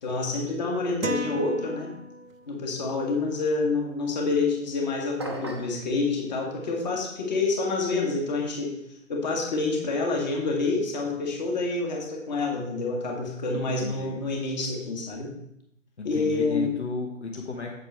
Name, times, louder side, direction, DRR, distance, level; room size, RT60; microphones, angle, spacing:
voice 1, 0.0-2.0 2.5-8.7 9.1-15.3 16.0-16.7, left 3 dB, 35° left, 0 dB, 1.9 m, -27 dB
sound 1, 1.0-2.5, right 1 dB, 75° right, 0.9 m, -34 dB
sound 2, 5.2-5.8, right 1 dB, 20° right, 0.5 m, -35 dB
voice 2, 13.5-14.1 16.0-17.7, left 4 dB, 55° left, 0 dB, 1.4 m, -34 dB
8.2 x 8.0 x 3.5 m, 0.77 s
figure-of-eight pair, 145°, 40 cm